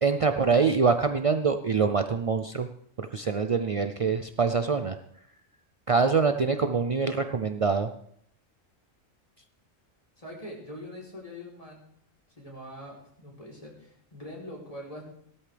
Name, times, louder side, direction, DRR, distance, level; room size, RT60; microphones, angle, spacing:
voice 1, 0.0-2.7 3.0-5.0 5.9-7.9, right 5 dB, 65° right, 7 dB, 0.3 m, -25 dB
voice 2, 10.2-11.9 12.4-15.0, left 1 dB, 25° left, -3 dB, 3.9 m, -43 dB
17.0 x 13.0 x 3.4 m, 0.69 s
omnidirectional pair, 1.3 m